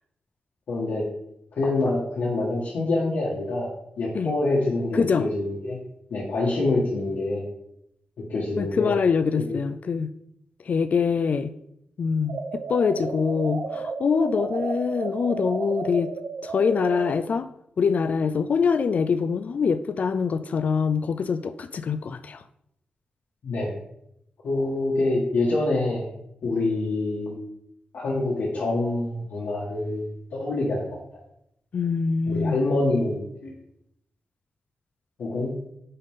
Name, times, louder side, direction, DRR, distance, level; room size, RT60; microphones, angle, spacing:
voice 1, 0.7-1.0 1.5-3.7 4.0-5.8 6.1-7.4 8.3-8.9 9.4-9.5 23.4-23.7 24.4-26.0 26.4-27.4 27.9-31.2 32.3-33.5 35.2-35.5, left 2 dB, 85° left, -7 dB, 1.8 m, -26 dB
voice 2, 4.9-5.3 8.6-10.1 10.6-11.5 12.0-16.1 16.4-17.5 17.8-22.4 31.7-32.6, left 5 dB, 55° left, 12 dB, 0.3 m, -24 dB
sound 1, 12.3-17.2, right 4 dB, 80° right, 0.8 m, -33 dB
10.5 x 4.1 x 3.7 m, 0.77 s
wide cardioid pair, 145°, 3 cm